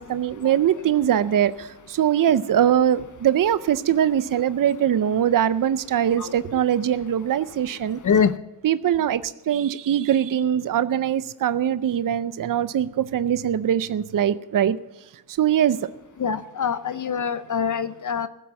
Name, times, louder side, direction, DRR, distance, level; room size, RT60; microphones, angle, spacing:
voice 1, 0.0-8.0 8.6-14.8 15.3-15.8, right 10 dB, 60° right, 14 dB, 0.5 m, -22 dB
voice 2, 8.0-8.4 16.2-18.3, left 6 dB, 55° left, 12 dB, 0.6 m, -24 dB
16.0 x 7.5 x 8.1 m, 0.98 s
wide cardioid pair, 140°, 37 cm